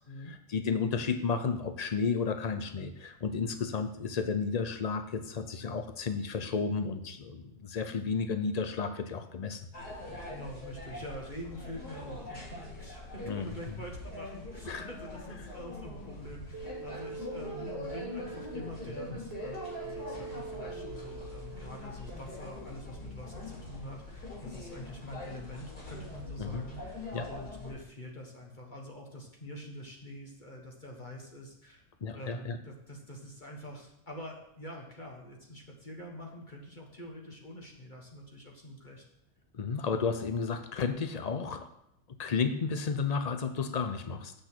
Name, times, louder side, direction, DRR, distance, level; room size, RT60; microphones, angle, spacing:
voice 1, 0.3-9.6 13.3-13.5 14.7-14.8 26.4-26.6 27.1-27.3 32.0-32.6 39.5-41.7 42.2-44.3, left 5 dB, 55° left, 9 dB, 0.4 m, -32 dB
sound 1, 9.7-27.7, left 2 dB, 80° left, 4.1 m, -43 dB
voice 2, 10.3-31.8 32.1-39.0, equal, 30° left, 0 dB, 1.5 m, -45 dB
sound 2, 16.5-22.1, right 5 dB, 65° right, 0.6 m, -44 dB
8.0 x 6.7 x 6.1 m, 0.77 s
omnidirectional pair, 1.6 m